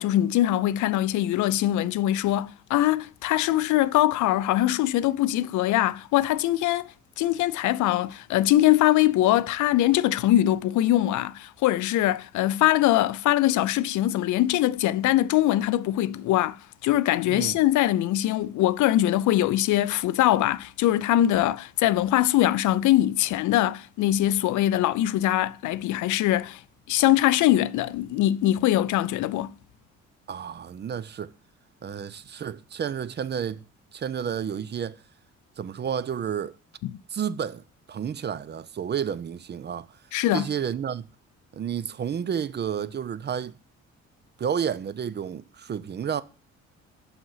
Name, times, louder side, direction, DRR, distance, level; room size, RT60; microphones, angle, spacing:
voice 1, 0.0-26.6 26.9-29.5 36.8-37.0 40.1-40.5, left 14 dB, 75° left, 0.5 m, -22 dB
voice 2, 30.3-31.3 31.8-33.6 33.9-35.0 35.6-36.5 37.1-37.6 37.9-39.9 40.3-41.0 41.5-43.5 44.4-46.2, right 8 dB, 35° right, 0.4 m, -31 dB
5.9 x 5.5 x 5.6 m
cardioid pair, 90°, 30 cm